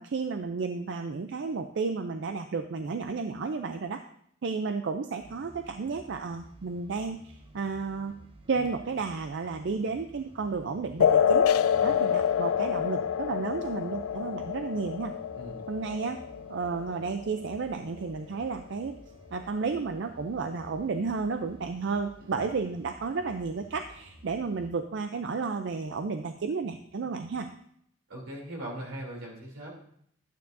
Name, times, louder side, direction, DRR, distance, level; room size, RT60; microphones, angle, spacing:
voice 1, 0.0-4.0 4.4-8.1 8.5-11.5 11.8-15.1 15.7-16.2 16.5-19.0 19.3-27.5, right 4 dB, 60° right, 8 dB, 0.4 m, -32 dB
sound 1, 5.2-24.7, right 1 dB, 25° right, 0.8 m, -53 dB
sound 2, 11.0-18.0, left 8 dB, 90° left, 0.3 m, -27 dB
voice 2, 28.1-29.7, right 1 dB, 80° right, -2 dB, 3.1 m, -40 dB
11.5 x 9.2 x 2.6 m, 0.69 s
head